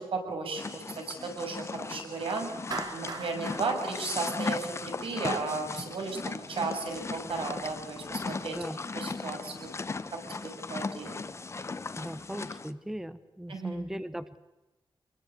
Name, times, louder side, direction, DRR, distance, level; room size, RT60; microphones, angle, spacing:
voice 1, 0.1-2.5 2.9-8.6 8.9-9.7 10.3-11.2 13.5-13.8, right 3 dB, 70° right, 4 dB, 6.9 m, -34 dB
sound 1, 0.6-12.7, left 4 dB, 30° left, 1.0 m, -37 dB
Clapping, 2.7-5.0, right 3 dB, 45° right, 3.7 m, -40 dB
voice 2, 11.9-14.4, equal, 5° right, 13 dB, 0.9 m, -39 dB
26.5 x 22.0 x 8.3 m, 1.0 s
wide cardioid pair, 170°, 9 cm